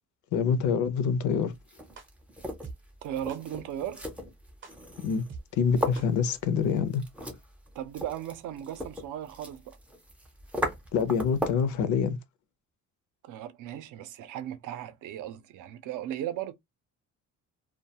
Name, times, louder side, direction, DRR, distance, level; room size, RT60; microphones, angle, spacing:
voice 1, 0.3-1.5 5.0-5.3 5.6-7.1 10.9-12.2, left 6 dB, 65° left, 0.6 m, -26 dB
sound 1, 1.5-11.7, equal, 5° right, 0.4 m, -38 dB
sound 2, 2.0-2.1 2.6-2.7 3.3-3.4 4.0-4.1 4.6-4.7 5.3-5.4 6.0-6.1, right 5 dB, 35° right, 0.7 m, -43 dB
voice 2, 3.0-4.1 7.7-9.8 13.2-16.5, right 11 dB, 70° right, 0.5 m, -37 dB
2.3 x 2.2 x 2.7 m
cardioid pair, 165°, 32 cm